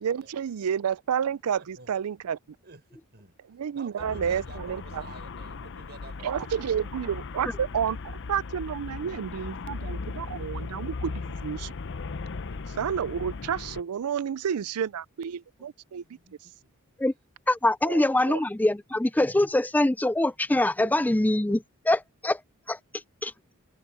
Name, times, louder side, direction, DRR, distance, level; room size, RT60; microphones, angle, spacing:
voice 1, 0.0-2.4 3.5-5.0 6.2-11.7 12.8-16.0 17.8-18.4, right 8 dB, 85° right, 0.4 m, -30 dB
voice 2, 2.6-3.3 3.7-6.7 16.0-16.4 16.6-16.7, right 3 dB, 50° right, 5.4 m, -49 dB
Traffic noise roadway noise, 4.0-13.8, left 4 dB, 60° left, 0.7 m, -37 dB
voice 3, 17.5-22.4 22.7-22.8 23.2-23.3, left 1 dB, 10° left, 0.4 m, -24 dB
open air
head